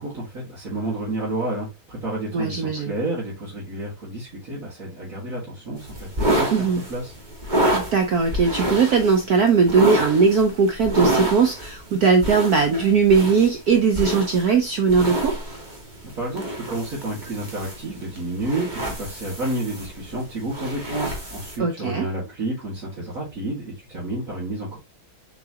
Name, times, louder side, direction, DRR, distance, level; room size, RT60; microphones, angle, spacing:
voice 1, 0.0-7.1 16.0-24.8, right 2 dB, 40° right, 2.5 m, -30 dB
voice 2, 2.3-2.9 6.5-6.8 7.7-15.4 21.6-22.1, right 5 dB, 60° right, 1.1 m, -19 dB
sound 1, 5.8-21.6, right 1 dB, 25° right, 1.7 m, -28 dB
7.3 x 4.6 x 2.8 m
omnidirectional pair, 2.2 m